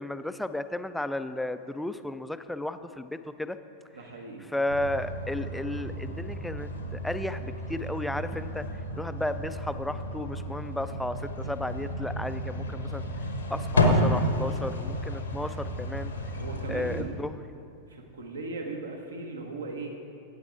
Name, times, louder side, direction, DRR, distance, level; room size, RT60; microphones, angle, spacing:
voice 1, 0.0-3.6 4.4-8.7 9.0-13.0 13.5-16.1 16.7-17.4, left 1 dB, 5° left, 11 dB, 0.3 m, -33 dB
voice 2, 3.9-4.5 16.4-17.1 17.9-19.9, right 3 dB, 70° right, 2 dB, 1.1 m, -38 dB
sound 1, 4.7-17.0, left 1 dB, 75° left, 0.9 m, -31 dB
8.8 x 8.5 x 4.5 m, 2.6 s
figure-of-eight pair, 90°, 0 cm